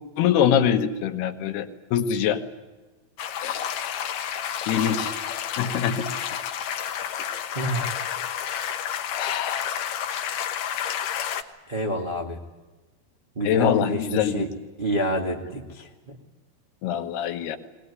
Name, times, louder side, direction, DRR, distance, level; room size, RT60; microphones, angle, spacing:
voice 1, 0.2-2.4 3.4-3.6 4.7-5.1 5.6-6.1 9.2-9.7 13.4-14.4 16.8-17.6, left 9 dB, 80° left, 6 dB, 3.3 m, -24 dB
sound 1, 3.2-11.4, left 9 dB, 65° left, 2.4 m, -30 dB
voice 2, 7.5-8.1 11.7-12.4 13.3-14.5 14.8-16.2, right 1 dB, 35° right, -1 dB, 0.8 m, -28 dB
21.0 x 20.0 x 9.6 m, 1.2 s
omnidirectional pair, 4.5 m